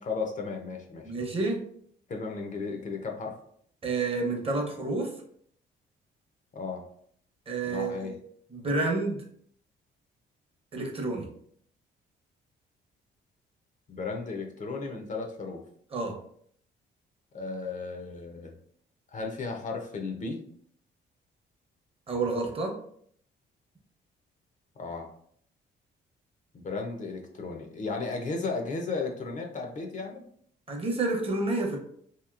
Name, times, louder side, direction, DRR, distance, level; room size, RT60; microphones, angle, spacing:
voice 1, 0.0-1.1 2.1-3.3 6.5-6.8 7.7-8.2 13.9-15.6 17.3-18.5 19.1-20.4 24.8-25.1 26.5-30.2, left 4 dB, 40° left, 2 dB, 0.5 m, -34 dB
voice 2, 1.0-1.6 3.8-5.1 7.5-8.2 8.5-9.2 10.7-11.3 15.9-16.1 22.1-22.7 30.7-31.8, right 3 dB, 30° right, 1 dB, 0.8 m, -29 dB
2.9 x 2.7 x 2.4 m, 0.63 s
cardioid pair, 90°, 20 cm